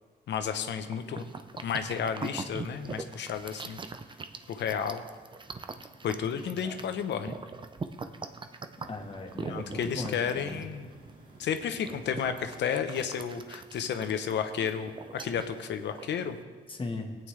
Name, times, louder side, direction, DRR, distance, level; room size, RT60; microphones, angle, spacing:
voice 1, 0.3-1.2 1.6-3.8 4.5-5.0 6.0-7.4 9.5-10.9 11.4-16.4, left 7 dB, 75° left, 8 dB, 0.9 m, -32 dB
sound 1, 0.6-16.4, right 4 dB, 25° right, 0.6 m, -43 dB
sound 2, 8.8-13.2, right 1 dB, 45° right, 2.6 m, -56 dB
voice 2, 8.9-10.6 16.7-17.1, left 3 dB, 30° left, 3 dB, 1.4 m, -38 dB
17.5 x 9.0 x 3.3 m, 1.5 s
cardioid pair, 95°, 18 cm